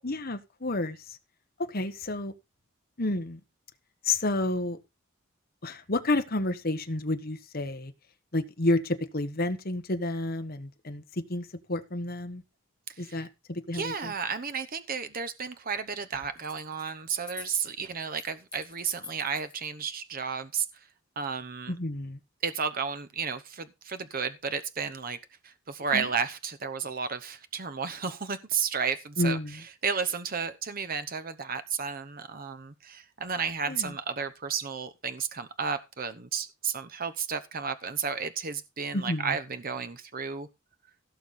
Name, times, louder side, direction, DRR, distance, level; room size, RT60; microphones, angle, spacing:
voice 1, 0.0-1.2 1.6-2.3 3.0-3.4 4.0-4.8 5.6-7.9 8.3-12.4 13.0-14.1 21.7-22.2 25.9-26.1 29.2-29.6 33.7-33.9 38.9-39.3, left 2 dB, 45° left, 1.3 m, -30 dB
voice 2, 12.9-13.3 13.7-20.9 21.2-21.7 22.4-25.2 25.4-40.5, right 6 dB, 45° right, 0.9 m, -33 dB
sound 1, 16.4-16.9 17.2-19.9, left 5 dB, 5° left, 2.6 m, -45 dB
16.5 x 6.7 x 4.2 m
head